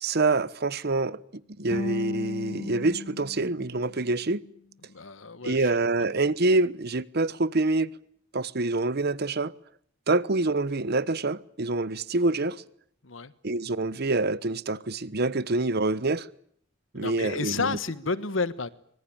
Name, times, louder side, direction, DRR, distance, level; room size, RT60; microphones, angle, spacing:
voice 1, 0.0-1.2 1.6-4.4 5.4-7.9 8.3-9.5 10.1-12.6 13.4-16.3 16.9-17.8, right 2 dB, 55° right, 1.1 m, -26 dB
sound 1, 1.7-4.8, left 4 dB, 35° left, 4.9 m, -37 dB
voice 2, 4.8-5.7 13.0-13.3 16.9-18.7, left 4 dB, 75° left, 1.4 m, -31 dB
25.0 x 24.0 x 8.8 m
head